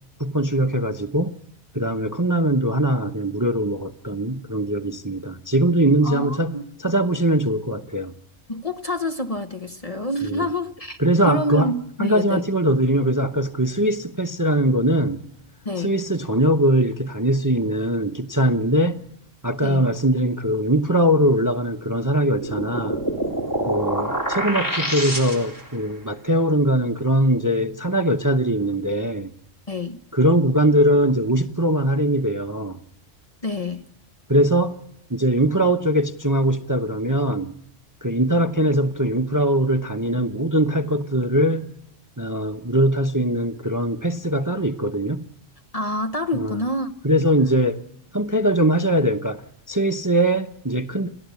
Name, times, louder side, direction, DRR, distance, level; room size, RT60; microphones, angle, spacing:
voice 1, 0.2-1.3 1.7-8.1 10.2-10.5 11.0-11.7 12.0-15.2 15.8-19.0 19.4-23.0 23.7-29.3 30.1-32.8 34.3-34.8 35.1-37.5 38.0-41.7 42.2-45.2 46.3-46.6 47.0-47.8 48.1-51.1, right 1 dB, 20° right, 0.7 m, -21 dB
voice 2, 6.0-6.6 8.5-11.0 11.2-12.5 15.6-15.9 19.6-19.9 29.7-30.0 33.4-33.9 45.7-46.9, left 1 dB, 30° left, 0.9 m, -27 dB
sound 1, 22.2-25.7, right 1 dB, 15° left, 3.7 m, -26 dB
29.5 x 13.0 x 8.3 m
omnidirectional pair, 1.3 m